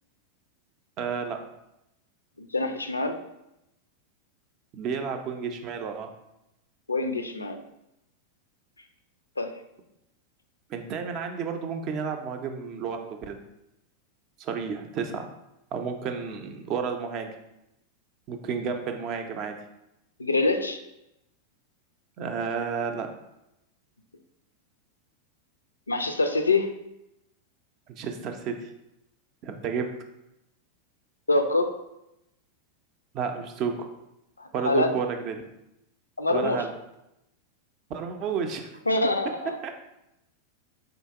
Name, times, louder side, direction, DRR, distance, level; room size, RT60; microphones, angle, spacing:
voice 1, 1.0-1.4 4.7-6.1 10.7-13.4 14.4-15.3 15.7-17.3 18.3-19.5 22.2-23.1 27.9-28.7 29.4-29.9 33.1-33.8 34.5-35.4 36.3-36.7 37.9-38.7 39.6-39.7, right 6 dB, 35° right, 5 dB, 0.5 m, -31 dB
voice 2, 2.4-3.2 6.9-7.6 9.4-9.6 20.2-20.8 25.9-26.7 31.3-31.8 34.4-34.9 36.2-36.6 38.9-39.6, left 2 dB, 80° left, 7 dB, 0.3 m, -25 dB
3.9 x 2.8 x 3.4 m, 0.87 s
figure-of-eight pair, 90°, 0 cm